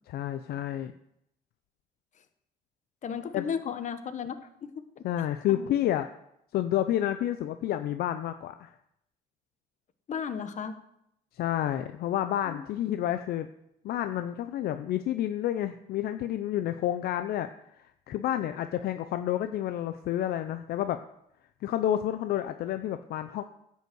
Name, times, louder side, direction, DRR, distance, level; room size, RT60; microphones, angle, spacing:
voice 1, 0.1-0.9 3.3-3.5 5.0-6.1 6.5-8.7 11.3-13.5 13.8-17.5 18.1-21.0 21.6-23.4, left 12 dB, 65° left, 9 dB, 0.6 m, -29 dB
voice 2, 3.0-4.5 4.7-5.0 5.5-5.7 10.1-10.7 12.4-12.6, left 7 dB, 45° left, 10 dB, 1.1 m, -34 dB
10.5 x 5.6 x 7.8 m, 0.77 s
cardioid pair, 110°, 17 cm